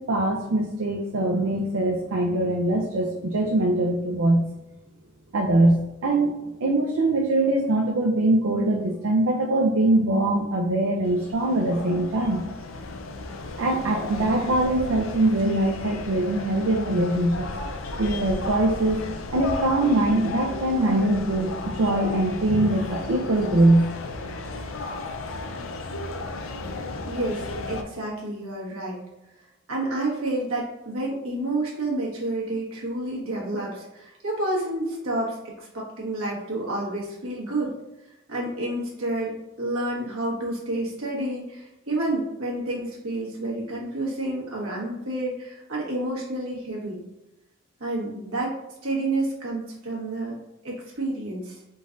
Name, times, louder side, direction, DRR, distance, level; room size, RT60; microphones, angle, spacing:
voice 1, 0.0-4.4 5.3-6.3 6.6-12.4 13.6-17.5 18.0-19.0 19.3-23.9, right 1 dB, 70° right, 0 dB, 0.5 m, -22 dB
sound 1, 11.0-27.8, left 3 dB, 70° left, 0.4 m, -34 dB
voice 2, 27.0-29.0 29.7-37.7 38.3-47.0 47.8-50.4 50.6-51.6, right 2 dB, 85° right, -4 dB, 1.4 m, -29 dB
3.9 x 3.8 x 2.5 m, 0.94 s
head